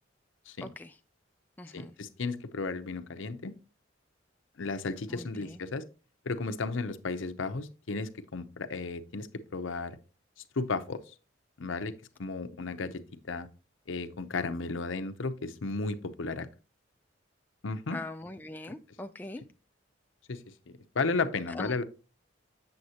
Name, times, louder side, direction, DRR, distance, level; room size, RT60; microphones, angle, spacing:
voice 1, 0.6-1.0 1.6-1.9 5.1-5.6 17.9-19.4 21.5-21.8, left 2 dB, 10° left, 6 dB, 0.3 m, -42 dB
voice 2, 1.7-3.5 4.6-5.8 6.3-10.0 10.6-11.1 11.6-11.9 12.2-13.0 13.3-13.5 13.9-16.5 17.6-18.0 20.3-21.8, left 3 dB, 80° left, 9 dB, 0.7 m, -34 dB
7.8 x 7.1 x 2.8 m, 0.33 s
head